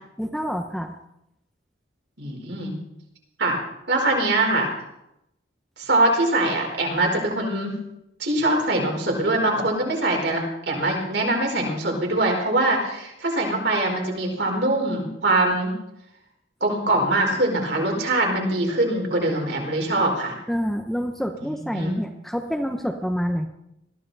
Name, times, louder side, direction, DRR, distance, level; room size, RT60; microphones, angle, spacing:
voice 1, 0.2-1.0 20.5-23.5, equal, ahead, 4 dB, 0.9 m, -27 dB
voice 2, 2.2-2.8 3.4-3.6 3.9-4.7 5.8-7.8 8.2-15.7 16.6-20.3 21.4-22.0, right 2 dB, 65° right, 1 dB, 4.5 m, -23 dB
21.0 x 14.5 x 4.1 m, 0.83 s
head